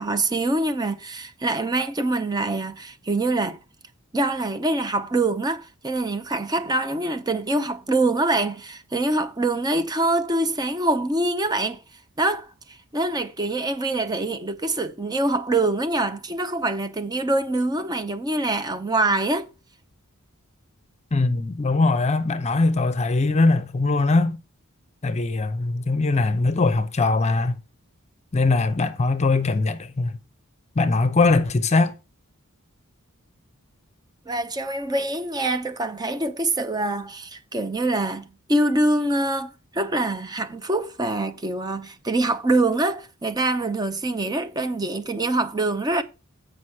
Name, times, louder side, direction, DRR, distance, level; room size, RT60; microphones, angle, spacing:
voice 1, 0.0-3.6 4.1-11.8 12.2-19.5 34.3-38.2 38.5-46.0, right 2 dB, 20° right, 0.7 m, -24 dB
voice 2, 21.1-24.4 25.0-27.6 28.3-30.2 30.8-31.9, left 3 dB, 30° left, 0.7 m, -21 dB
8.1 x 5.3 x 5.6 m
head